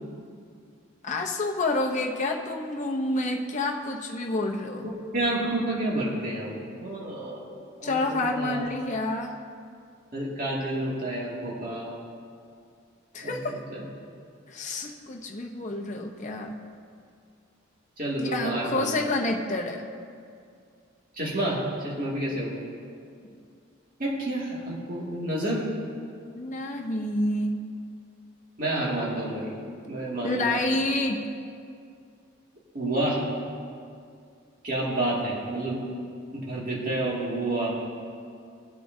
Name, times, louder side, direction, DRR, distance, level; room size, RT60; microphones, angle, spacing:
voice 1, 1.0-4.9 7.8-9.4 13.1-13.6 14.5-16.5 18.2-19.9 26.3-27.6 30.2-31.2, left 2 dB, 35° left, 1 dB, 0.9 m, -28 dB
voice 2, 4.8-7.5 7.8-8.6 10.1-11.9 13.2-13.8 18.0-18.9 21.2-22.6 24.0-25.7 28.6-29.5 29.9-30.6 32.7-33.3 34.6-35.8 36.3-37.7, right 1 dB, 40° right, -5 dB, 2.3 m, -29 dB
18.0 x 8.3 x 2.8 m, 2.3 s
head